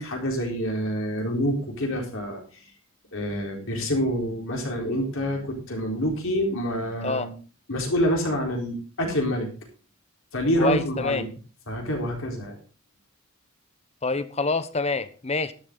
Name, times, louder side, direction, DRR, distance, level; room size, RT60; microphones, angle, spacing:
voice 1, 0.0-2.4 3.1-7.3 7.7-9.5 10.3-11.3 11.7-12.6, equal, 60° left, 4.1 m, -27 dB
voice 2, 10.6-11.2 14.0-15.5, left 3 dB, 30° left, 0.9 m, -26 dB
12.5 x 11.0 x 3.9 m
head